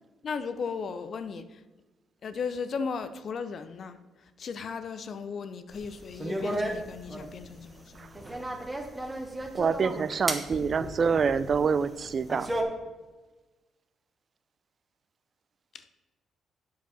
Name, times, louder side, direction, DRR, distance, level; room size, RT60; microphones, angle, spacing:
voice 1, 0.2-1.6 2.2-8.2 15.7-15.9, left 5 dB, 55° left, 0.6 m, -36 dB
sound 1, 5.7-12.6, right 1 dB, 15° right, 1.2 m, -35 dB
voice 2, 9.5-12.5, right 5 dB, 45° right, 0.4 m, -26 dB
7.6 x 5.7 x 5.6 m
cardioid pair, 90°, 0 cm